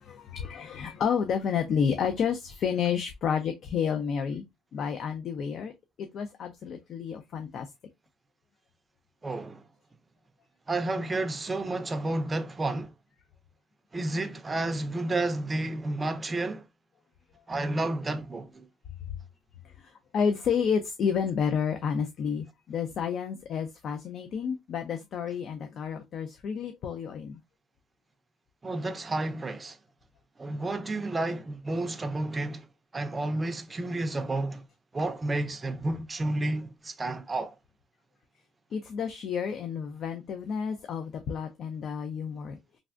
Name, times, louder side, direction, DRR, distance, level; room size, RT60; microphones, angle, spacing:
voice 1, 0.0-4.4 4.7-5.7 6.0-7.7 19.6-27.4 38.7-42.6, left 7 dB, 55° left, 0.4 m, -30 dB
voice 2, 9.2-9.6 10.7-12.9 13.9-16.6 17.5-18.7 28.6-29.8 30.4-32.6 32.9-34.6 34.9-37.5, right 2 dB, 20° right, 0.4 m, -31 dB
3.3 x 2.5 x 2.3 m
cardioid pair, 105°, 0 cm